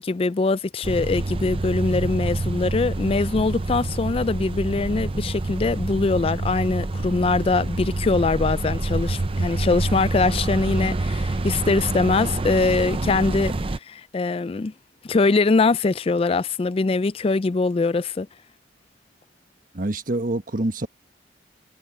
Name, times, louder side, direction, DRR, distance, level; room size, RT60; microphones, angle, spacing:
voice 1, 0.0-13.5 13.9-14.7 15.0-18.3, left 3 dB, 35° left, 0.4 m, -22 dB
sound 1, 0.8-13.8, right 2 dB, 30° right, 0.6 m, -27 dB
sound 2, 1.7-7.5, left 1 dB, 85° left, 6.2 m, -55 dB
voice 2, 19.7-20.9, right 2 dB, 50° right, 1.4 m, -26 dB
head